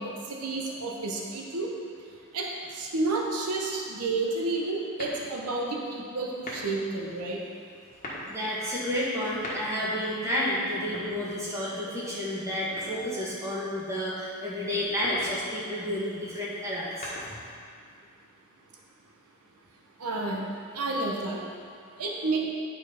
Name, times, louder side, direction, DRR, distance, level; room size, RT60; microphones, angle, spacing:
voice 1, 0.0-1.7 2.3-2.5 2.7-7.4 20.0-20.5 20.7-21.4 22.0-22.4, right 3 dB, 85° right, 0 dB, 0.9 m, -30 dB
sound 1, 4.9-5.6 6.3-6.9 7.8-8.3 9.2-10.0 10.8-11.7 12.8-13.4 14.8-15.4 16.7-17.6, left 1 dB, 35° left, 1.5 m, -41 dB
voice 2, 8.3-17.1, left 1 dB, 15° right, -8 dB, 1.8 m, -30 dB
9.7 x 4.5 x 5.1 m, 2.3 s
head